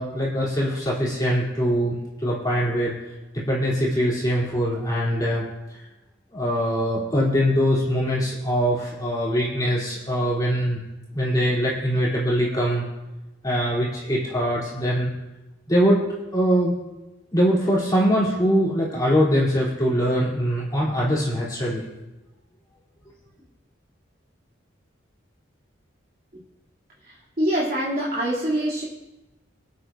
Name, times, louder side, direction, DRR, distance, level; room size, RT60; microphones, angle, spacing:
voice 1, 0.0-2.0 2.2-2.9 3.3-5.4 5.7-5.8 6.3-10.8 11.1-12.8 13.4-15.1 15.7-16.0 16.3-16.7 17.3-21.8, equal, 20° left, -7 dB, 3.1 m, -22 dB
voice 2, 27.4-28.8, right 1 dB, 45° right, -7 dB, 2.7 m, -24 dB
25.0 x 8.5 x 2.6 m, 1.0 s
head